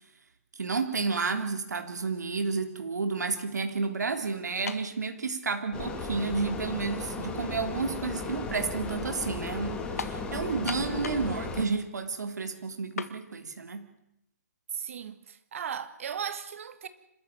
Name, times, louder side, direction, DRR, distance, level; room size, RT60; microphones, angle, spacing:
voice 1, 0.6-13.9, right 4 dB, 75° right, 3.4 m, -31 dB
sound 1, 4.7-5.0 5.8-5.9 10.0-10.2 10.7-11.3 11.6-11.7 13.0-13.2, left 6 dB, 60° left, 1.9 m, -36 dB
sound 2, 5.7-11.6, left 3 dB, 10° left, 2.3 m, -36 dB
voice 2, 14.7-16.9, right 8 dB, 50° right, 2.3 m, -36 dB
26.5 x 14.0 x 9.4 m
hypercardioid pair, 160°, 9 cm